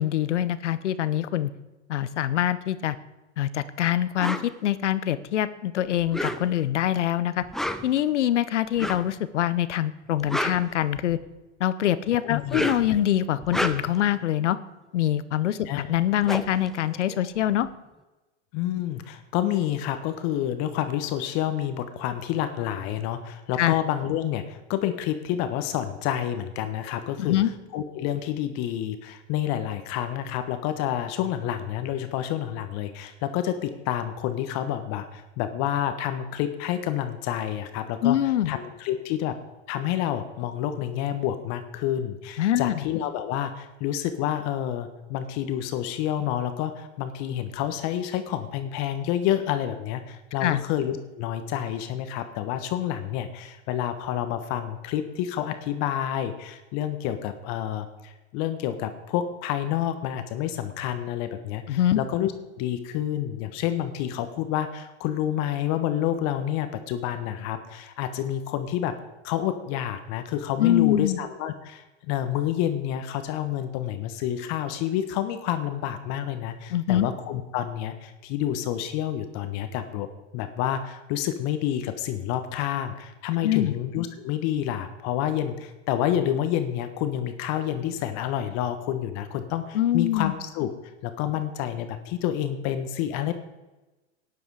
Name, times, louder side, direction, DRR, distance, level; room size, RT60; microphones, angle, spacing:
voice 1, 0.0-1.5 1.9-3.0 3.4-7.4 7.8-11.2 11.6-14.6 14.9-17.7 23.6-23.8 27.2-27.5 38.0-38.6 42.4-42.8 50.4-50.6 61.7-62.0 70.6-71.2 76.7-77.1 83.4-83.7 89.7-90.3, left 12 dB, 75° left, 15 dB, 0.9 m, -24 dB
sound 1, 4.2-4.5 6.0-6.7 7.4-8.0 8.8-9.1 10.0-11.3 12.3-13.0 13.4-14.1 15.6-15.7 15.9-17.6, equal, ahead, 0.7 m, -31 dB
voice 2, 12.2-12.8 15.7-15.9 18.5-27.4 27.7-38.2 38.5-39.4 39.7-68.9 69.2-80.1 80.3-90.7 91.0-93.3, left 11 dB, 50° left, 9 dB, 1.3 m, -29 dB
13.0 x 10.0 x 4.9 m, 1.1 s
hypercardioid pair, 100°, 36 cm